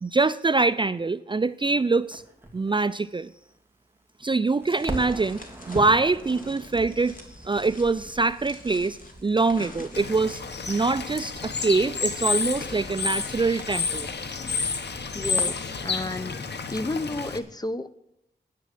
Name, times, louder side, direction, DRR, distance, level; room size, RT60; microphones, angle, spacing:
voice 1, 0.0-2.2 2.5-3.3 4.2-7.2 7.4-10.4 10.7-14.1, right 3 dB, 30° right, 15 dB, 0.4 m, -24 dB
Crackle, 2.1-4.3 4.6-15.9, right 1 dB, 15° right, 2.6 m, -43 dB
sound 1, 4.7-10.4, left 2 dB, 55° left, 2.6 m, -42 dB
Bird / Water, 9.9-17.4, left 5 dB, 80° left, 1.3 m, -30 dB
voice 2, 15.1-17.9, left 2 dB, 25° left, 13 dB, 0.8 m, -32 dB
10.5 x 9.3 x 7.6 m, 0.82 s
wide cardioid pair, 90°, 17 cm